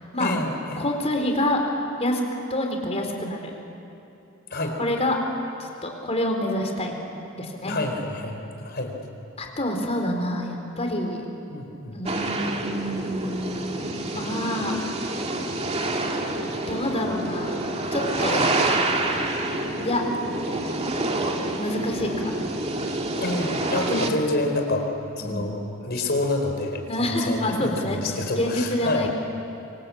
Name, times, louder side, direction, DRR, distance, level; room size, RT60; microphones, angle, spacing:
voice 1, 0.2-0.9 4.5-4.8 7.6-9.0 11.5-12.0 18.3-18.5 23.2-24.9 25.2-29.1, left 2 dB, 50° left, 3 dB, 4.3 m, -28 dB
voice 2, 0.8-1.6 2.0-2.2 2.5-3.5 4.8-5.2 5.6-7.0 7.4-7.8 9.4-11.3 11.9-14.8 16.6-17.6 17.9-18.4 19.8-20.0 21.6-22.4 25.2-25.5 26.9-29.1, left 1 dB, 30° left, 2 dB, 4.2 m, -27 dB
sound 1, 12.1-24.1, right 2 dB, 30° right, 2.1 m, -27 dB
26.5 x 25.5 x 8.7 m, 2.8 s
head